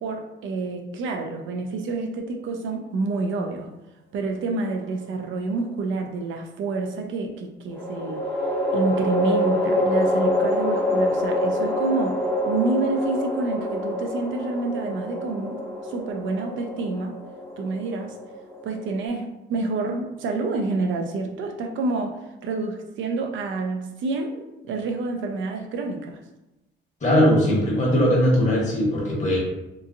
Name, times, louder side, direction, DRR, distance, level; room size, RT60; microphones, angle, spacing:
voice 1, 0.0-3.7 4.1-8.2 8.7-12.1 12.4-17.1 17.6-18.1 18.6-22.2 22.4-26.2, right 3 dB, 75° right, 3 dB, 0.5 m, -28 dB
sound 1, 4.6-5.5 7.7-19.0, left 1 dB, 10° left, 0.7 m, -26 dB
voice 2, 27.0-29.4, equal, 40° left, -3 dB, 1.1 m, -20 dB
2.9 x 2.3 x 2.5 m, 0.97 s
cardioid pair, 90°, 20 cm